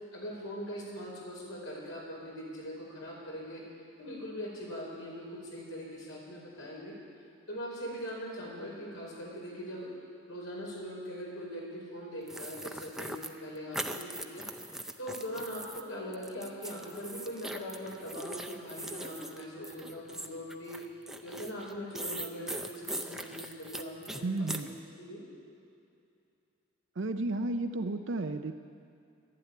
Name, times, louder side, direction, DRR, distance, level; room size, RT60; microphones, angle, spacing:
voice 1, 0.1-3.6 4.0-7.0 7.5-9.9 10.2-14.4 15.0-20.8 21.2-24.7 25.0-25.3, equal, 85° left, -3 dB, 4.7 m, -41 dB
sound 1, 12.3-15.8 16.1-24.7, right 1 dB, ahead, 0.5 m, -40 dB
voice 2, 24.2-24.8 27.0-28.5, right 2 dB, 65° right, 8 dB, 0.6 m, -33 dB
11.5 x 11.5 x 9.5 m, 2.5 s
head